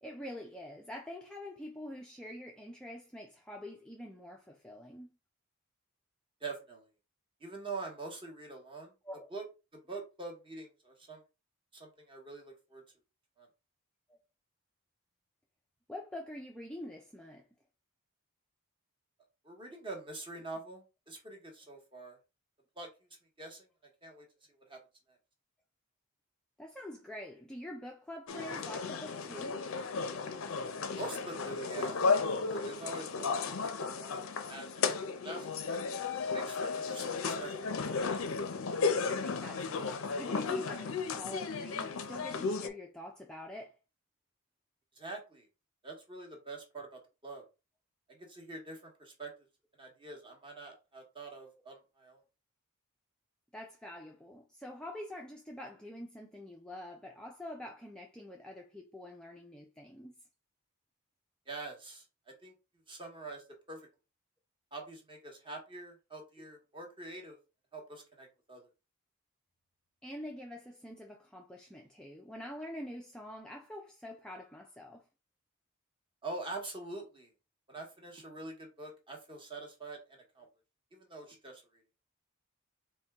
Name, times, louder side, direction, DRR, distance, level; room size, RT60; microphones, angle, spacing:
voice 1, 0.0-5.1 9.0-9.3 15.9-17.5 26.6-29.7 39.1-43.8 53.5-60.2 70.0-75.0, left 1 dB, 5° left, 0.3 m, -46 dB
voice 2, 6.4-6.9 7.4-8.9 9.3-9.4 9.7-11.2 11.7-12.8 13.4-13.5 19.4-22.2 22.8-22.9 23.4-23.7 24.0-24.8 31.0-32.0 32.4-34.2 34.5-35.8 36.3-37.6 45.0-45.5 45.8-47.4 48.1-49.3 49.8-52.2 61.5-62.0 62.4-62.5 62.9-63.8 64.7-67.4 67.7-68.6 76.2-77.3 77.7-80.5 80.9-81.6, right 3 dB, 25° right, 1.0 m, -45 dB
sound 1, 28.3-42.7, left 4 dB, 60° left, 0.5 m, -34 dB
4.2 x 2.2 x 3.4 m
head